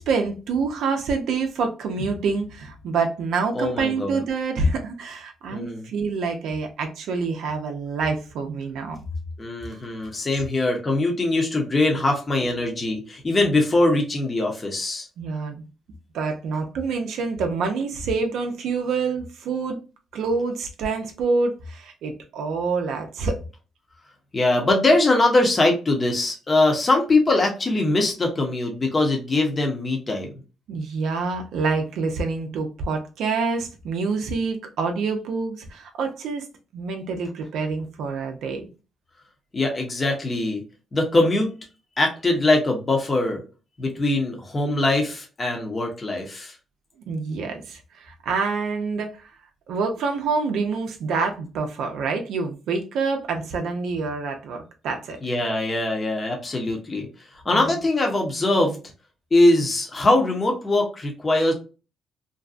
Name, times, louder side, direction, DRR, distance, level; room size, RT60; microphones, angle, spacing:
voice 1, 0.0-9.0 9.7-9.8 15.2-15.6 16.1-19.8 20.1-23.4 30.7-36.5 36.7-38.7 47.1-49.3 49.7-55.2 57.5-57.7, right 4 dB, 80° right, 4 dB, 0.4 m, -27 dB
voice 2, 3.5-4.2 5.5-5.9 9.4-15.1 24.3-30.3 39.5-40.6 40.9-41.6 42.0-43.4 43.8-46.5 55.2-57.1 57.4-58.8 59.3-61.5, left 2 dB, 30° left, 1 dB, 0.8 m, -22 dB
2.6 x 2.2 x 2.4 m, 0.32 s
cardioid pair, 90°, 0 cm